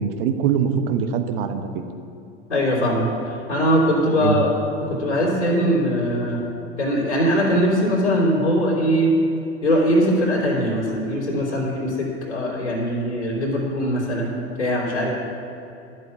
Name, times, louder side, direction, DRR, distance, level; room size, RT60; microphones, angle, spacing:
voice 1, 0.0-1.8 4.2-4.4, right 7 dB, 55° right, 8 dB, 1.1 m, -23 dB
voice 2, 2.5-4.5 4.8-6.4 6.8-9.1 9.6-14.3 14.6-15.1, equal, 85° left, -5 dB, 3.1 m, -21 dB
11.5 x 7.8 x 7.9 m, 2.6 s
figure-of-eight pair, 85°, 34 cm